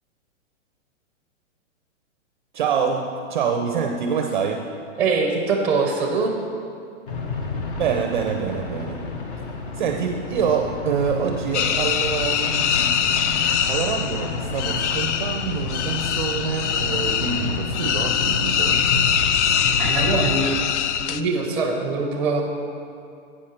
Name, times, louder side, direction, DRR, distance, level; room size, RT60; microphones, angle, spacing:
voice 1, 2.5-4.7 7.8-9.1 9.7-13.1 13.7-19.1, right 6 dB, 40° right, 4 dB, 0.4 m, -26 dB
voice 2, 5.0-6.4 19.8-20.6 21.1-22.4, right 4 dB, 5° right, 1 dB, 0.6 m, -23 dB
sound 1, 7.1-20.3, left 3 dB, 45° left, 0.8 m, -31 dB
sound 2, 11.5-21.2, left 8 dB, 65° left, 0.5 m, -23 dB
8.6 x 6.4 x 4.3 m, 2.4 s
hypercardioid pair, 160°, 38 cm